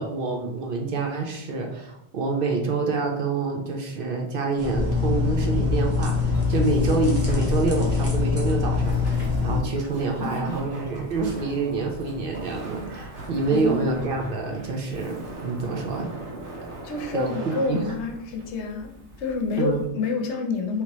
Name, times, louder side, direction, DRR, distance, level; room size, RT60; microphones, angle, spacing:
voice 1, 0.0-16.2 17.1-17.9 19.6-19.8, right 3 dB, 60° right, 1 dB, 0.6 m, -27 dB
sound 1, 4.6-9.6, left 4 dB, 15° right, 0.6 m, -24 dB
Boiling, 6.1-14.0, equal, 40° right, 1.5 m, -38 dB
Laughter, 9.4-19.9, right 2 dB, 80° right, 1.0 m, -41 dB
voice 2, 10.2-10.6 13.5-14.0 16.8-18.9 19.2-20.8, left 4 dB, 75° left, 3 dB, 0.9 m, -28 dB
3.4 x 2.8 x 2.9 m, 0.82 s
omnidirectional pair, 1.2 m